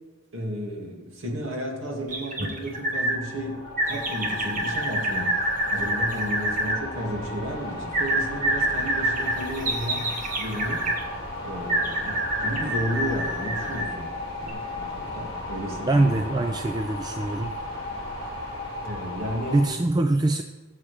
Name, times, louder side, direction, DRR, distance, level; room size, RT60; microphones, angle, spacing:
voice 1, 0.3-3.6 3.9-5.4 5.7-10.1 10.4-10.9 11.4-14.1 14.5-16.1 18.8-19.6, equal, 75° right, 0 dB, 2.3 m, -33 dB
sound 1, 2.1-3.2 3.8-6.8 7.9-11.0 11.7-14.0 14.4-14.5, right 1 dB, 40° right, 1.4 m, -27 dB
sound 2, 2.3-19.7, left 1 dB, 30° left, 3.4 m, -35 dB
voice 2, 15.9-17.6 19.5-20.4, right 2 dB, 20° right, 7 dB, 0.4 m, -23 dB
19.5 x 7.4 x 3.4 m, 1.3 s
head